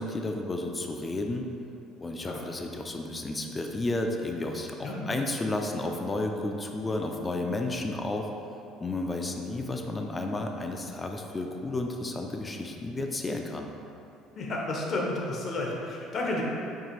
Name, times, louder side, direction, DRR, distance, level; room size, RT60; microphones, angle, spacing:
voice 1, 0.0-1.5 2.0-8.3 8.8-13.7, left 2 dB, 25° left, 3 dB, 0.4 m, -32 dB
voice 2, 14.4-16.4, left 2 dB, 50° left, -2 dB, 0.8 m, -31 dB
4.6 x 2.4 x 2.9 m, 2.9 s
supercardioid pair, 80°, 0 cm